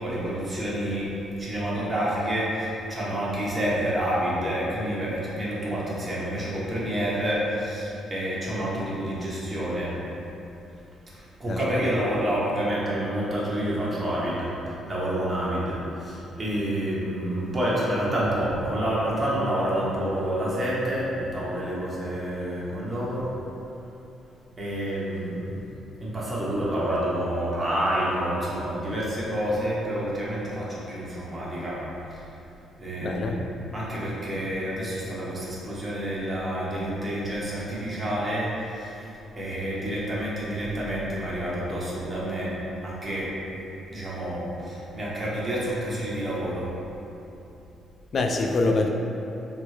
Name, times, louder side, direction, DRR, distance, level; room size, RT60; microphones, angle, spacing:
voice 1, 0.0-1.1 1.4-9.9 11.1-23.3 24.6-25.7 26.0-31.8 32.1-32.2 32.8-33.4 33.7-38.9 39.4-42.5 42.8-43.3 43.9-46.7, right 1 dB, 30° right, -7 dB, 1.3 m, -28 dB
voice 2, 33.0-33.5 48.1-48.9, left 3 dB, 50° left, 2 dB, 0.3 m, -24 dB
6.0 x 3.3 x 2.2 m, 2.8 s
cardioid pair, 90°, 0 cm